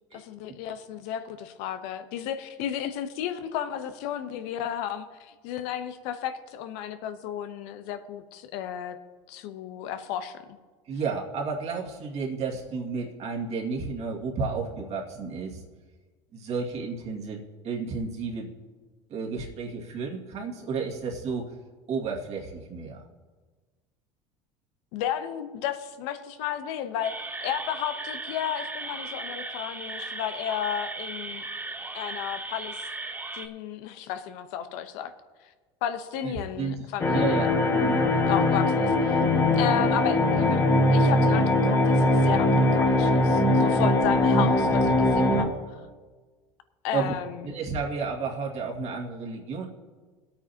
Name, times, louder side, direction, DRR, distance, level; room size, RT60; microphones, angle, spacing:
voice 1, 0.1-9.0 9.3-10.4 24.9-27.1 27.4-31.5 31.9-32.9 33.3-35.1 35.8-37.5 38.3-39.2 39.5-40.6 40.9-45.8 46.8-47.5, left 10 dB, 70° left, 9 dB, 0.9 m, -33 dB
voice 2, 10.9-15.6 16.3-18.5 19.1-21.5 21.9-23.1 36.2-36.7 37.1-38.1 46.9-47.2 47.4-49.7, right 4 dB, 45° right, 0 dB, 2.1 m, -32 dB
sound 1, 27.0-33.5, right 3 dB, 10° right, 0.8 m, -37 dB
sound 2, 37.0-45.4, left 1 dB, 15° left, 1.8 m, -21 dB
21.0 x 8.8 x 2.9 m, 1.4 s
supercardioid pair, 100°, 15 cm